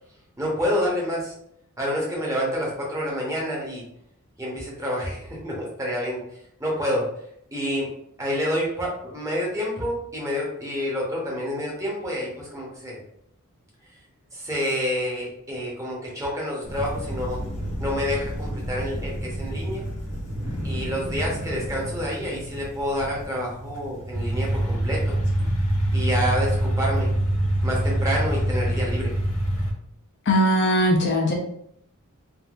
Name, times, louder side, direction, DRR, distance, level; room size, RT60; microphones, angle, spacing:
voice 1, 0.4-1.3 1.8-3.8 4.4-6.2 6.6-7.0 7.5-7.9 8.2-13.0 14.3-17.4 17.8-19.8 20.6-25.1 25.9-27.1 27.6-29.1, equal, 15° right, -4 dB, 0.9 m, -28 dB
sound 1, 16.6-29.7, right 1 dB, 90° left, 1.2 m, -27 dB
voice 2, 30.3-31.3, equal, 50° left, 0 dB, 0.5 m, -20 dB
3.5 x 2.6 x 2.4 m, 0.73 s
head